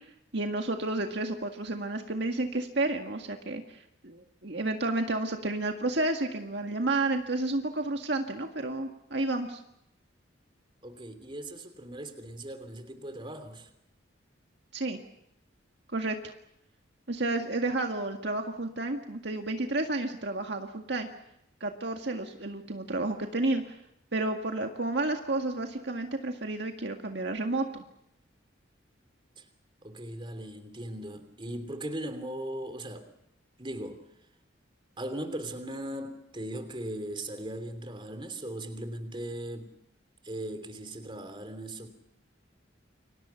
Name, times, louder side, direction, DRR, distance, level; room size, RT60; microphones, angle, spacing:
voice 1, 0.3-9.6 14.7-15.0 15.9-16.3 17.1-21.1 21.6-23.7 24.1-27.8, right 2 dB, 60° right, 4 dB, 1.9 m, -31 dB
voice 2, 10.8-13.7 29.4-29.5 29.8-33.1 33.6-34.0 35.0-39.7 40.2-41.9, right 1 dB, 25° right, 9 dB, 3.1 m, -38 dB
29.5 x 24.5 x 5.8 m, 0.77 s
head